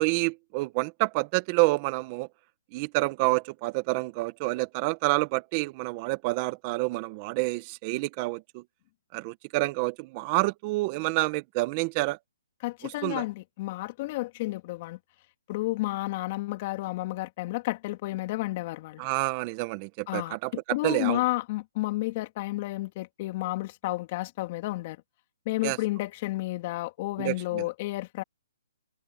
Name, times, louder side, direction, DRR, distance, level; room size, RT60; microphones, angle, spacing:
voice 1, 0.0-2.3 2.7-8.6 9.1-12.2 12.8-13.2 19.0-21.2 25.6-25.8 27.2-27.6, right 24 dB, 30° right, 1.4 m, -28 dB
voice 2, 12.6-15.0 15.5-19.1 20.1-20.4 20.7-25.0 25.5-28.2, left 19 dB, 35° left, 2.7 m, -31 dB
hypercardioid pair, 150°, 0 cm